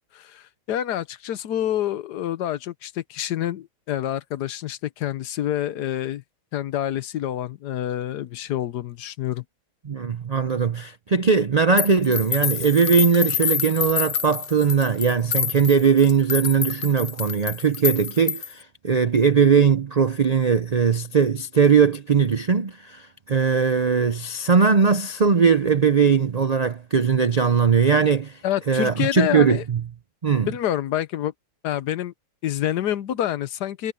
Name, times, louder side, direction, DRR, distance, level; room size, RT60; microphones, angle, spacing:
voice 1, 0.0-6.2 6.5-9.4 28.4-29.6 30.5-31.3 31.6-32.1 32.4-33.9, left 11 dB, 80° left, 1.4 m, -27 dB
voice 2, 9.8-28.4 28.7-29.8 30.2-30.5, right 6 dB, 80° right, 0.3 m, -20 dB
sound 1, 11.8-18.6, left 7 dB, 45° left, 0.9 m, -27 dB
omnidirectional pair, 1.8 m